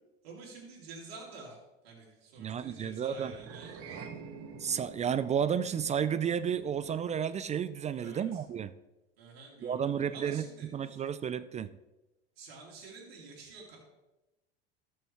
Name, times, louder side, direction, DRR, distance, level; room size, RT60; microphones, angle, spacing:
voice 1, 0.2-1.6 1.8-3.8 7.9-8.4 9.2-11.0 12.4-13.8, right 3 dB, 85° right, -3 dB, 2.9 m, -49 dB
voice 2, 2.4-3.3 4.6-8.7 9.6-10.5 10.7-11.7, right 8 dB, 25° right, 14 dB, 0.3 m, -32 dB
sound 1, 3.2-7.7, right 5 dB, 50° right, 1.3 m, -48 dB
13.5 x 6.4 x 3.4 m, 1.0 s
hypercardioid pair, 90°, 30 cm